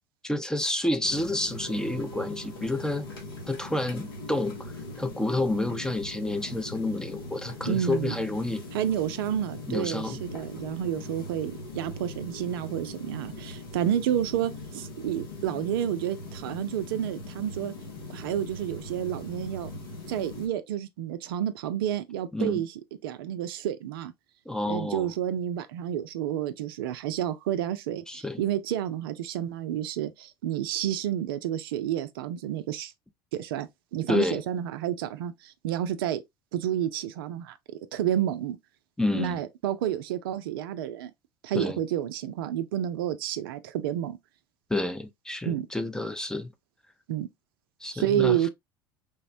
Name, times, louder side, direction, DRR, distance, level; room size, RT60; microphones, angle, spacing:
voice 1, 0.2-3.1 3.5-4.7 5.0-8.6 9.7-10.2 22.3-22.6 24.5-25.1 28.1-28.4 34.1-34.4 39.0-39.4 41.5-41.8 44.7-46.5 47.8-48.4, left 2 dB, 5° left, 0.4 m, -29 dB
sound 1, 1.0-20.5, left 2 dB, 85° left, 0.9 m, -41 dB
voice 2, 7.7-8.2 8.7-17.7 18.1-19.7 20.1-22.7 23.0-24.1 24.7-32.9 33.3-36.2 36.5-37.6 37.9-38.6 39.1-41.1 41.4-44.2 45.4-45.7 47.1-47.3 47.9-48.5, right 10 dB, 75° right, 0.4 m, -30 dB
3.4 x 2.1 x 2.5 m
hypercardioid pair, 75°, 12 cm